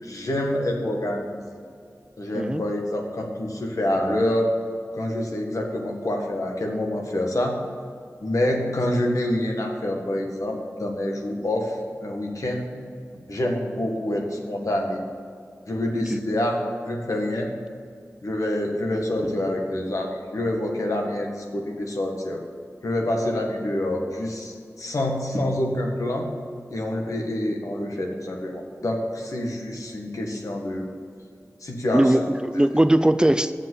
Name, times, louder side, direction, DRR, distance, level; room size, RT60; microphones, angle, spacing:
voice 1, 0.0-1.6 2.2-4.5 4.9-7.6 8.2-12.7 13.3-15.0 15.7-17.5 18.2-22.4 22.8-26.3 26.7-30.8 31.6-32.3, left 1 dB, 80° left, 1 dB, 1.7 m, -27 dB
voice 2, 31.9-33.5, right 1 dB, 15° right, 11 dB, 0.4 m, -20 dB
7.8 x 7.4 x 8.0 m, 2.3 s
wide cardioid pair, 75°, 6 cm